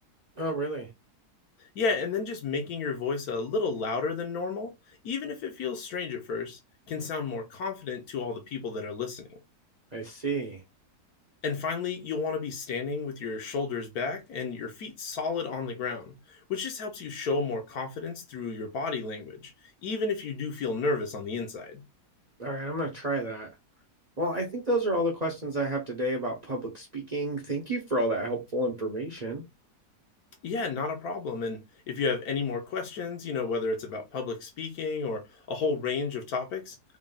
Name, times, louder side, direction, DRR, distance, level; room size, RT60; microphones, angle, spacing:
voice 1, 0.4-0.9 9.9-10.6 22.4-23.5 24.2-29.4, right 1 dB, 35° right, 0.7 m, -30 dB
voice 2, 1.6-4.7 5.0-6.6 6.9-9.4 11.4-19.5 19.8-21.8 30.4-31.6 31.9-35.2 35.5-36.8, left 4 dB, 65° left, 1.4 m, -32 dB
3.6 x 2.5 x 3.8 m
omnidirectional pair, 1.7 m